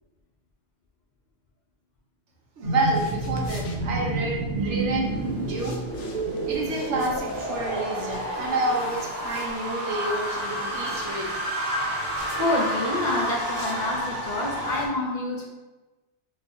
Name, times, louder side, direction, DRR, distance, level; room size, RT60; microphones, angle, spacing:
sound 1, 2.6-14.9, right 1 dB, 60° right, 1.2 m, -29 dB
voice 1, 2.6-5.8 6.5-11.3, right 2 dB, 85° right, -1 dB, 1.2 m, -29 dB
sound 2, 2.7-4.6 5.4-10.1 10.8-11.2 12.1-12.5 13.5-14.0, left 3 dB, 80° left, 1.0 m, -47 dB
voice 2, 12.3-15.5, left 1 dB, 45° left, -2 dB, 0.8 m, -27 dB
4.3 x 4.0 x 2.7 m, 1.1 s
omnidirectional pair, 1.2 m